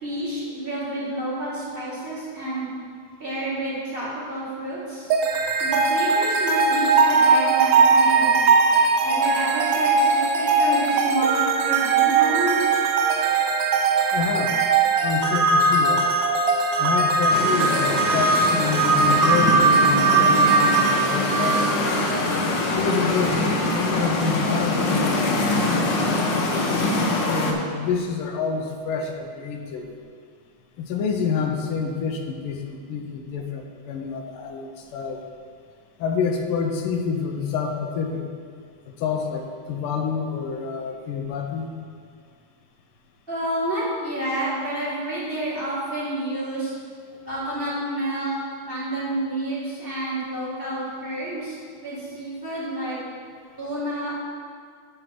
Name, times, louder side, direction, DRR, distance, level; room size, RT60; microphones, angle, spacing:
voice 1, 0.0-2.7 3.2-5.1 5.6-8.4 9.0-12.8 43.3-46.7 47.3-48.4 48.7-53.0 53.6-54.2, right 1 dB, 25° right, -9 dB, 2.3 m, -29 dB
sound 1, 5.1-22.3, right 4 dB, 75° right, 1.3 m, -20 dB
voice 2, 14.1-14.6 15.0-16.0 16.8-22.0 22.8-26.6 27.3-29.9 30.8-35.2 36.0-38.3 38.9-41.7, left 5 dB, 85° left, 3 dB, 1.6 m, -28 dB
sound 2, 17.3-27.5, left 2 dB, 70° left, 1.3 m, -24 dB
9.2 x 3.4 x 6.0 m, 2.1 s
omnidirectional pair, 2.4 m